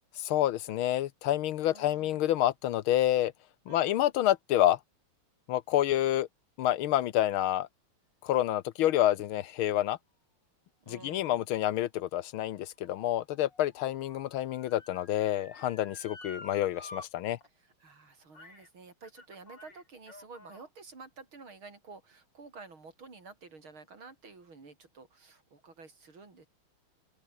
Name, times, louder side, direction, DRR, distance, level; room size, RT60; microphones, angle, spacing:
voice 1, 0.2-3.3 3.7-4.8 5.5-6.3 6.6-7.7 8.2-10.0 10.9-17.4, left 13 dB, 75° left, 1.6 m, -28 dB
voice 2, 1.7-2.2 3.7-4.0 10.8-11.5 17.4-26.5, right 4 dB, 65° right, 5.6 m, -51 dB
Motor vehicle (road) / Siren, 12.4-17.1 17.4-17.5 18.3-18.7 19.0-20.7 21.4-21.5, left 2 dB, 50° left, 7.1 m, -51 dB
open air
omnidirectional pair, 2.4 m